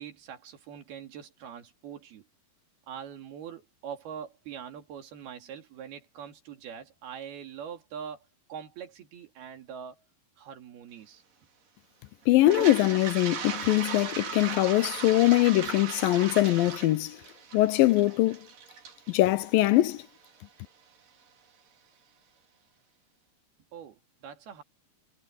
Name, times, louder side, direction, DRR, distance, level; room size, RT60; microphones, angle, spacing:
voice 1, 0.0-2.3 2.9-10.0 10.4-11.2 23.7-24.6, right 8 dB, 85° right, 4.4 m, -43 dB
voice 2, 12.3-17.2 17.5-18.4 19.1-20.0, left 16 dB, 80° left, 2.3 m, -22 dB
Toilet flush, 12.4-20.3, right 6 dB, 60° right, 4.7 m, -38 dB
omnidirectional pair, 4.4 m